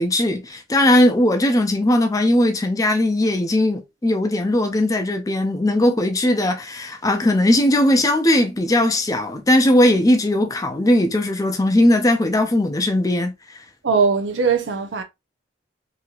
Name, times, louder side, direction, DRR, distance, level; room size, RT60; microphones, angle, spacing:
voice 1, 0.0-13.6, left 1 dB, 20° left, 0.5 m, -18 dB
voice 2, 13.8-15.0, right 5 dB, 85° right, 0.5 m, -20 dB
2.9 x 2.7 x 2.3 m
head